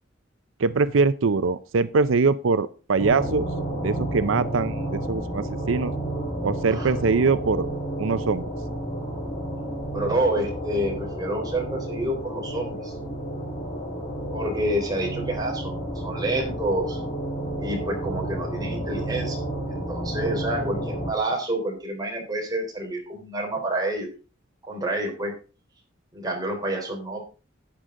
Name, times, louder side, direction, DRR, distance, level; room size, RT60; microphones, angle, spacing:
voice 1, 0.6-3.5 3.8-5.9 6.4-7.7 8.0-8.4, right 4 dB, 85° right, 14 dB, 0.5 m, -23 dB
sound 1, 3.0-21.1, right 1 dB, 35° left, 3.9 m, -31 dB
voice 2, 9.9-12.9 14.3-17.0 17.6-19.4 19.7-24.1 24.6-25.3 26.1-27.2, right 1 dB, 20° right, 0 dB, 3.6 m, -28 dB
11.5 x 9.0 x 3.7 m, 0.34 s
head